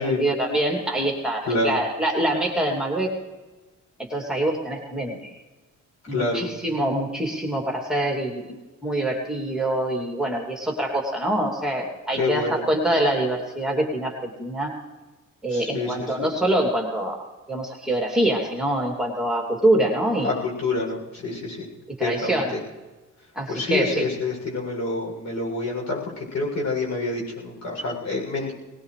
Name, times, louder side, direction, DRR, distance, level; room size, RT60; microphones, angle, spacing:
voice 1, 0.0-3.1 4.1-5.3 6.1-14.7 15.4-20.4 22.0-22.5 23.3-24.0, right 1 dB, ahead, -1 dB, 3.0 m, -25 dB
voice 2, 1.5-1.8 6.1-6.5 12.2-12.6 15.5-16.3 20.2-21.7 22.0-22.6 23.5-28.5, left 3 dB, 65° left, -2 dB, 7.5 m, -27 dB
20.0 x 19.5 x 3.4 m, 1.2 s
cardioid pair, 90°, 30 cm